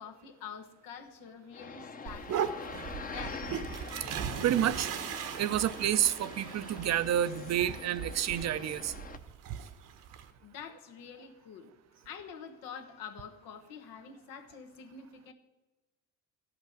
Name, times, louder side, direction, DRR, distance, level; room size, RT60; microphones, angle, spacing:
voice 1, 0.0-3.5 10.4-11.7 12.0-15.3, left 7 dB, 85° left, 5 dB, 1.4 m, -47 dB
sound 1, 1.5-9.2, left 5 dB, 25° left, 0.8 m, -45 dB
sound 2, 2.1-10.3, right 8 dB, 70° right, 1.2 m, -39 dB
voice 2, 3.9-4.2 4.4-8.9, right 10 dB, 55° right, 14 dB, 0.7 m, -30 dB
13.5 x 5.9 x 9.2 m, 1.1 s
cardioid pair, 100°, 33 cm